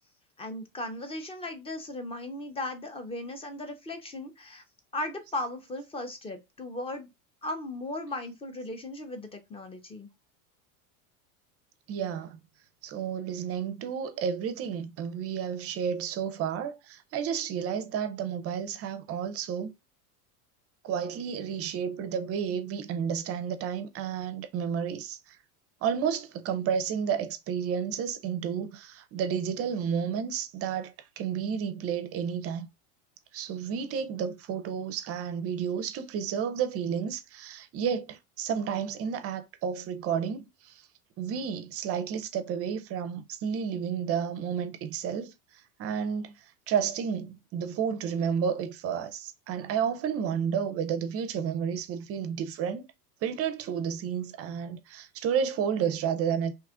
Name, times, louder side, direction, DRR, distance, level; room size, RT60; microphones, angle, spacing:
voice 1, 0.4-4.6 4.9-7.1 7.4-10.1, left 1 dB, 15° left, 0.5 m, -37 dB
voice 2, 11.9-12.4 12.8-19.7 20.8-25.4 25.8-32.7 33.3-40.9 41.2-52.9 53.2-56.5, right 7 dB, 35° right, 0.5 m, -31 dB
2.9 x 2.4 x 3.5 m
supercardioid pair, 110°, 44 cm